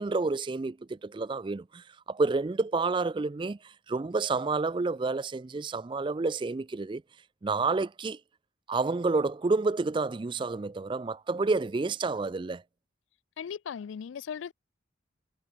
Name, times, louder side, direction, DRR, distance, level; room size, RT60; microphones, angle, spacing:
voice 1, 0.0-7.0 7.4-8.2 8.7-12.6, right 3 dB, 25° right, 0.3 m, -29 dB
voice 2, 13.4-14.5, left 7 dB, 80° left, 0.4 m, -37 dB
head